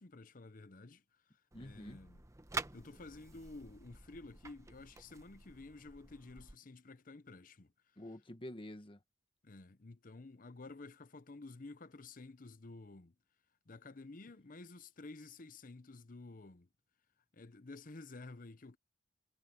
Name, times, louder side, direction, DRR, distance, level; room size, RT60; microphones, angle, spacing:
voice 1, 0.0-2.2 2.7-7.7 9.4-13.1 13.7-16.7 17.3-18.8, left 3 dB, 50° left, 0.8 m, -52 dB
voice 2, 1.5-2.0 8.0-9.0, left 1 dB, 30° left, 1.3 m, -48 dB
sound 1, 1.5-6.6, right 3 dB, 15° right, 1.1 m, -48 dB
head